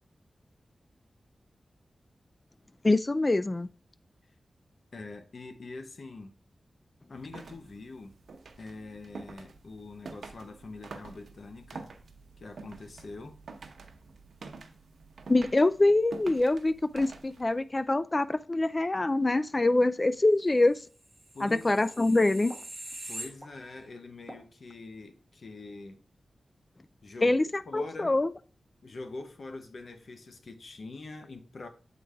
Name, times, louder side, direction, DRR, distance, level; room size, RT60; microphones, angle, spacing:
voice 1, 2.8-3.7 15.3-20.8 21.4-22.5 27.2-28.3, left 2 dB, 25° left, 0.3 m, -25 dB
voice 2, 4.9-6.3 7.1-8.1 8.6-11.9 12.4-13.4 21.3-21.8 23.1-26.0 27.0-27.4 27.7-28.2 28.8-31.7, left 3 dB, 65° left, 0.9 m, -44 dB
sound 1, 7.1-17.6, right 4 dB, 90° right, 0.7 m, -47 dB
sound 2, 21.0-23.9 24.3-24.4, right 1 dB, 10° right, 1.1 m, -43 dB
7.8 x 3.9 x 3.4 m
wide cardioid pair, 120°, 0 cm